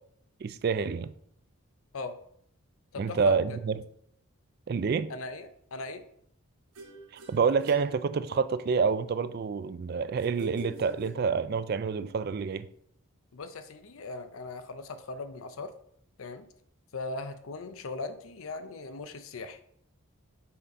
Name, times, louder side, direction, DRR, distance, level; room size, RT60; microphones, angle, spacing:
voice 1, 0.4-1.1 3.0-3.8 4.7-5.1 7.3-12.7, right 5 dB, 45° right, 0.3 m, -28 dB
voice 2, 2.9-3.6 5.1-6.0 13.3-15.7 16.2-16.5 16.9-19.6, left 3 dB, 70° left, 0.5 m, -39 dB
sound 1, 6.7-8.7 10.2-11.7, right 1 dB, 85° right, 1.3 m, -45 dB
5.6 x 4.1 x 5.2 m
head